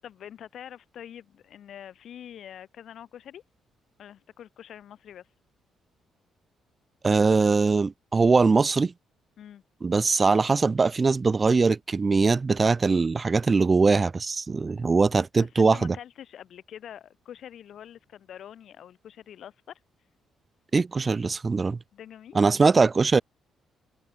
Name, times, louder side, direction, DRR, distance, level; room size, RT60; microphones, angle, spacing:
voice 1, 0.0-3.4 4.0-5.3 9.4-9.6 15.3-19.5 21.9-22.4, left 10 dB, 65° left, 7.8 m, -45 dB
voice 2, 7.0-8.9 9.8-16.0 20.7-21.8 22.3-23.2, right 4 dB, 30° right, 1.0 m, -21 dB
open air
cardioid pair, 90°, 0 cm